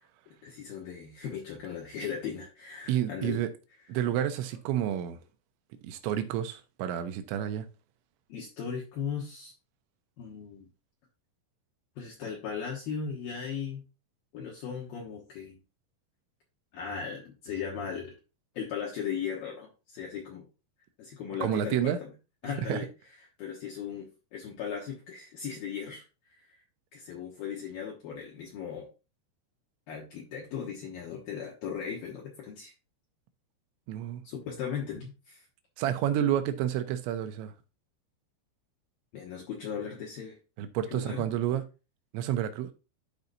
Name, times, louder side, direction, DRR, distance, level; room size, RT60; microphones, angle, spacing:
voice 1, 0.3-3.4 8.3-9.5 10.2-10.7 12.0-13.8 14.3-15.6 16.7-18.1 18.5-20.5 21.0-22.1 22.4-22.9 23.4-26.0 26.3-26.6 26.9-28.9 29.9-32.7 34.2-35.4 39.1-40.4 40.9-41.3, left 7 dB, 65° left, 2.5 m, -37 dB
voice 2, 2.9-3.5 3.9-5.2 5.8-7.7 21.4-22.0 22.7-22.8 33.9-34.2 35.8-37.5 40.6-41.6 42.1-42.7, right 11 dB, 80° right, 3.0 m, -29 dB
12.0 x 4.7 x 2.6 m
omnidirectional pair, 5.4 m